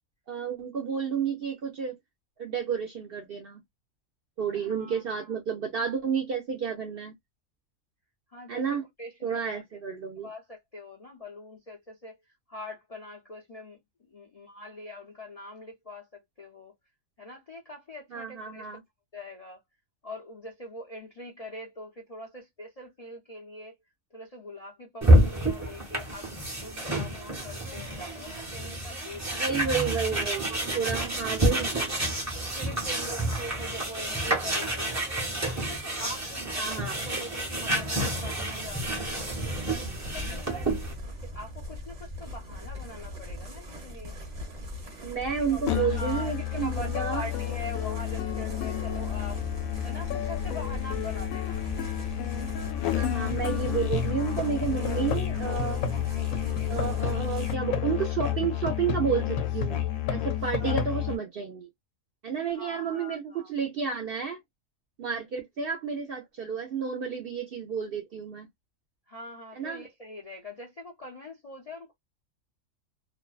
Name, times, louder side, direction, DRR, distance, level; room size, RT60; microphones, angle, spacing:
voice 1, 0.3-1.9 2.4-3.6 4.4-7.1 8.5-8.8 9.2-10.3 18.1-18.8 29.3-31.7 36.6-37.0 45.0-47.3 52.9-55.8 56.7-59.8 60.1-61.7 62.2-64.4 65.0-68.5 69.5-69.8, right 7 dB, 60° right, 0.6 m, -31 dB
voice 2, 4.5-5.4 8.3-8.6 9.0-9.6 10.2-12.1 12.5-13.8 14.1-16.1 16.4-16.7 17.2-18.8 19.1-19.6 20.0-23.8 24.1-29.6 30.1-30.2 30.5-31.1 31.7-32.0 32.5-35.1 35.6-40.8 41.2-44.2 45.5-49.4 49.8-51.7 60.4-60.8 62.5-63.5 69.1-71.9, left 1 dB, 45° left, 0.5 m, -43 dB
sound 1, 25.0-40.9, right 1 dB, 20° right, 0.5 m, -28 dB
sound 2, 38.6-57.5, left 1 dB, 35° right, 0.9 m, -40 dB
Musical instrument, 45.7-61.2, left 10 dB, 85° left, 1.0 m, -30 dB
2.5 x 2.1 x 2.3 m
omnidirectional pair, 1.4 m